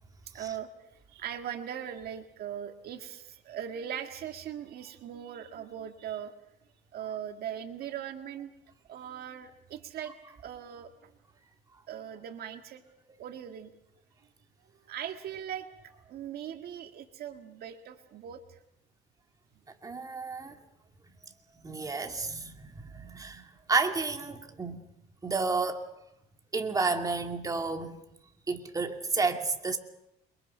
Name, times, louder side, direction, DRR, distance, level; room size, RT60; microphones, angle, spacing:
voice 1, 0.3-6.3 6.9-8.5 8.9-11.1 11.9-12.8 13.2-13.7 14.7-18.6, right 9 dB, 65° right, 1.9 m, -40 dB
voice 2, 19.8-20.6 21.6-24.8 25.2-25.9 26.5-28.0 28.5-29.8, right 4 dB, 20° right, 2.6 m, -31 dB
28.5 x 23.5 x 5.7 m
cardioid pair, 110°, 17 cm